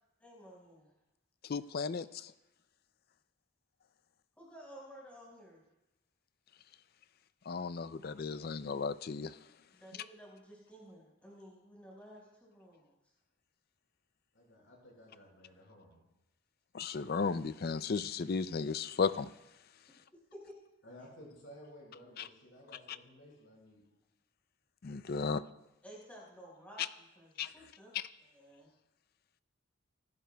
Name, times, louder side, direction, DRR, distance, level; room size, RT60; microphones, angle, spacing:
voice 1, 0.2-0.9 4.4-5.6 9.7-12.9 20.3-20.5 25.8-27.9 28.2-28.7, equal, 5° left, -4 dB, 5.0 m, -53 dB
voice 2, 1.5-2.3 7.5-9.3 16.7-19.3 22.2-22.3 24.8-25.4 27.4-27.5 27.9-28.0, left 5 dB, 45° left, 14 dB, 0.4 m, -34 dB
voice 3, 14.3-16.0 20.8-23.8, equal, 60° left, -2 dB, 5.2 m, -55 dB
24.0 x 12.0 x 2.3 m, 0.94 s
head